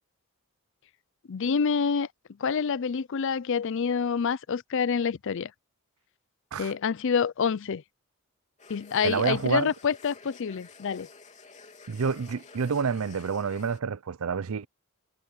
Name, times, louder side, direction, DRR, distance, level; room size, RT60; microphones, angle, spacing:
voice 1, 1.3-2.1 2.4-5.5 6.6-7.8 8.7-11.1, left 6 dB, 60° left, 0.5 m, -27 dB
sound 1, 8.6-13.8, left 4 dB, 35° left, 3.2 m, -51 dB
voice 2, 9.0-9.7 11.9-14.7, right 6 dB, 80° right, 0.5 m, -28 dB
head